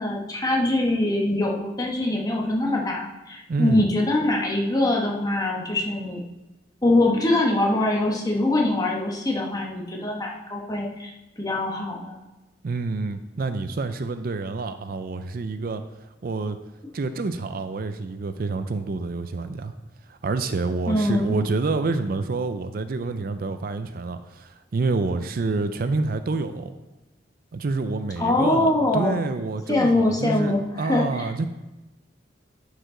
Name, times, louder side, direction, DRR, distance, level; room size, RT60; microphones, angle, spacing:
voice 1, 0.0-6.2 6.8-12.2 20.8-21.4 28.2-29.2 29.7-31.3, left 2 dB, 20° left, 0 dB, 1.1 m, -23 dB
voice 2, 3.5-3.9 12.6-15.8 16.2-16.6 16.9-19.7 20.1-26.7 27.5-31.5, right 3 dB, 55° right, 10 dB, 0.4 m, -27 dB
11.0 x 4.9 x 3.8 m, 1.0 s
head